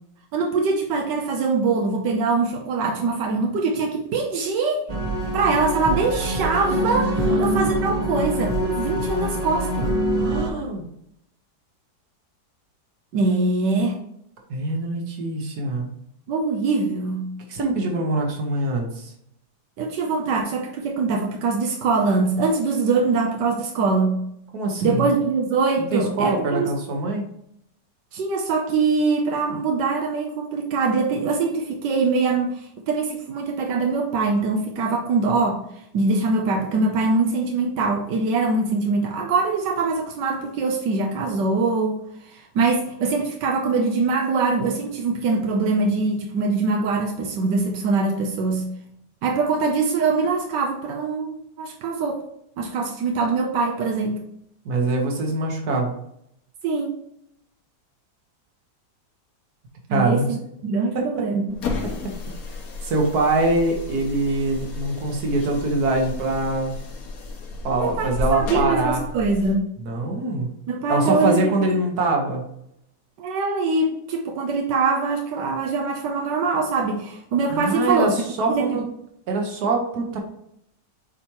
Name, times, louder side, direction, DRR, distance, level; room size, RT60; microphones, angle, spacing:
voice 1, 0.3-4.8 5.3-9.9 13.1-14.0 16.3-17.3 19.8-24.2 24.8-26.7 28.1-35.6 35.9-48.7 49.2-52.2 52.6-54.2 56.6-57.0 59.9-60.4 60.6-61.6 67.8-69.6 70.7-71.5 73.2-78.1 78.5-78.8, right 4 dB, 85° right, 2 dB, 1.5 m, -23 dB
sound 1, 4.9-10.5, equal, 35° right, 0.7 m, -24 dB
voice 2, 10.2-10.9 14.5-15.9 17.5-19.1 24.5-25.1 25.9-27.2 54.7-55.9 59.9-60.3 61.0-61.1 62.8-66.7 67.6-69.0 69.8-70.5 70.9-72.4 77.5-78.8 79.3-80.2, right 2 dB, 65° right, 1 dB, 1.8 m, -23 dB
sound 2, 61.5-69.6, left 3 dB, 60° left, 1.5 m, -32 dB
8.3 x 4.4 x 3.0 m, 0.74 s
omnidirectional pair, 1.9 m